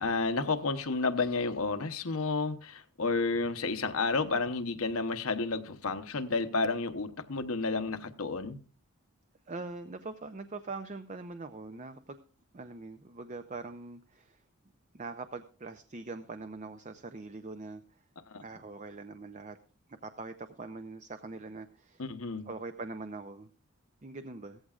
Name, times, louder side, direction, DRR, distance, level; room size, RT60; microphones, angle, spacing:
voice 1, 0.0-8.6 18.3-18.4 22.0-22.5, left 3 dB, 75° left, 1.0 m, -31 dB
voice 2, 9.5-12.2 12.5-14.4 14.9-17.8 18.4-19.6 19.9-22.0 22.5-23.5 24.0-24.6, right 3 dB, 35° right, 0.6 m, -42 dB
16.5 x 14.5 x 2.4 m
head